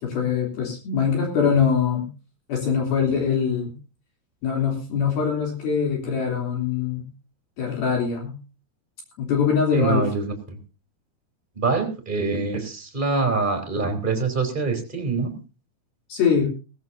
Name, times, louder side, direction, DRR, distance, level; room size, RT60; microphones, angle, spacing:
voice 1, 0.0-2.1 2.5-3.7 4.4-7.0 7.6-8.4 9.2-10.1 16.1-16.5, left 6 dB, 60° left, 1 dB, 4.9 m, -23 dB
voice 2, 9.7-10.6 11.5-15.3, right 4 dB, 15° right, 4 dB, 2.7 m, -25 dB
19.5 x 15.5 x 2.7 m, 0.32 s
omnidirectional pair, 5.2 m